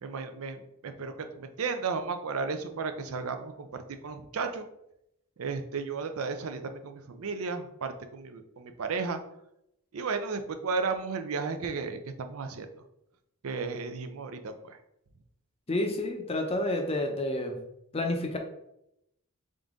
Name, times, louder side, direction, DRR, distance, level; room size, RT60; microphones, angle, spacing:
voice 1, 0.0-4.7 5.4-9.2 9.9-12.7 13.4-14.8, right 4 dB, 75° right, 8 dB, 0.5 m, -34 dB
voice 2, 15.7-17.6 17.9-18.4, left 1 dB, 25° left, 4 dB, 0.6 m, -29 dB
3.9 x 3.7 x 3.6 m, 0.81 s
head